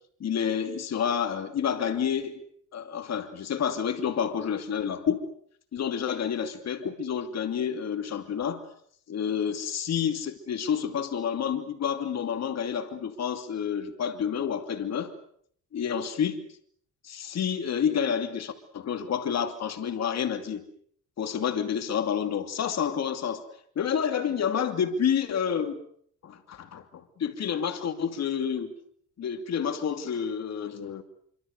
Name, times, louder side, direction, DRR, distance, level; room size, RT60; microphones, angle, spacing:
voice 1, 0.2-2.3 2.7-5.2 5.7-8.6 9.1-15.1 15.7-16.4 17.0-20.6 21.2-23.4 23.8-25.8 26.2-28.7 29.2-31.0, left 8 dB, 60° left, 7 dB, 2.7 m, -29 dB
26.5 x 25.0 x 6.7 m, 0.63 s
cardioid pair, 90°, 30 cm